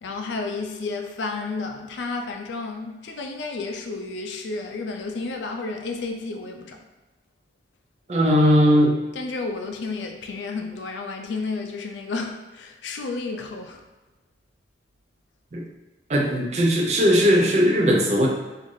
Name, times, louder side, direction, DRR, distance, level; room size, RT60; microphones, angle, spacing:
voice 1, 0.0-6.8 9.2-13.8, left 3 dB, 90° left, 4 dB, 0.4 m, -31 dB
voice 2, 8.1-9.0 15.5-15.6 16.1-18.3, equal, 40° right, -1 dB, 0.4 m, -18 dB
3.2 x 2.4 x 2.6 m, 1.1 s
head